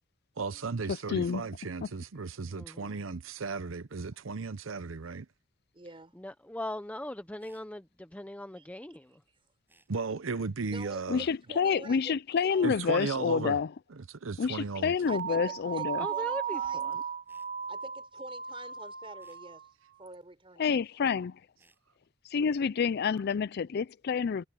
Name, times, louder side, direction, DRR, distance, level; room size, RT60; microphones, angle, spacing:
voice 1, 0.4-5.3 9.9-11.2 12.6-13.6 14.2-14.9, right 4 dB, 85° right, 0.8 m, -35 dB
voice 2, 0.9-1.5 1.8-1.9 11.1-13.7 14.4-16.1 20.6-21.4 22.2-24.4, left 6 dB, 55° left, 0.4 m, -28 dB
voice 3, 2.5-3.0 6.1-9.2 16.0-17.0, left 1 dB, 5° left, 0.7 m, -40 dB
voice 4, 5.7-6.1 8.6-8.7 10.7-12.2 12.4-12.7 15.1-16.9 17.7-19.7 20.0-20.7, right 2 dB, 30° right, 4.5 m, -47 dB
sound 1, 7.4-7.7 9.7-9.9 12.3-12.6 15.0-15.3 17.3-17.5 19.2-19.4 21.6-21.8, right 2 dB, 10° right, 7.5 m, -65 dB
sound 2, 15.0-19.7, right 8 dB, 45° right, 1.3 m, -36 dB
head